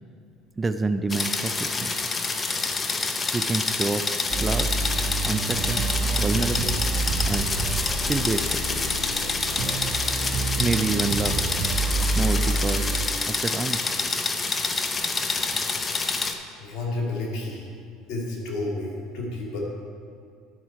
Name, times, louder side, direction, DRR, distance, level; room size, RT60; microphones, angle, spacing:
voice 1, 0.6-1.9 3.3-4.0 4.4-4.7 5.2-6.8 7.3-7.5 8.1-8.8 10.6-11.4 12.2-13.9, right 3 dB, 20° right, 9 dB, 0.4 m, -28 dB
sound 1, 1.1-16.3, left 3 dB, 25° left, 0.7 m, -27 dB
sound 2, 4.3-13.1, right 3 dB, 55° right, 1.1 m, -28 dB
voice 2, 16.6-17.7 18.1-19.6, left 2 dB, 60° left, -2 dB, 2.5 m, -31 dB
11.0 x 5.6 x 4.6 m, 2.3 s
supercardioid pair, 90°, 0 cm